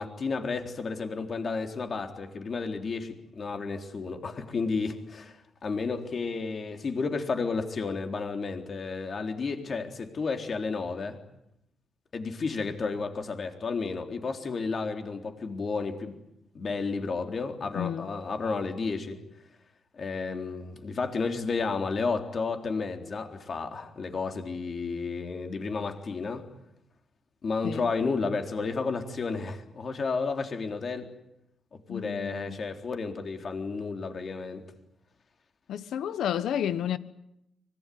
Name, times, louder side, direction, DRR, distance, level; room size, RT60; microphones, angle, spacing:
voice 1, 0.0-11.2 12.1-16.2 16.5-19.2 20.0-26.5 27.4-31.1 31.7-34.7, left 4 dB, 45° left, 3.8 m, -32 dB
voice 2, 17.7-18.1 27.6-27.9 31.9-32.6 35.7-37.0, left 10 dB, 85° left, 1.4 m, -31 dB
25.0 x 22.0 x 9.5 m
cardioid pair, 115°, 0 cm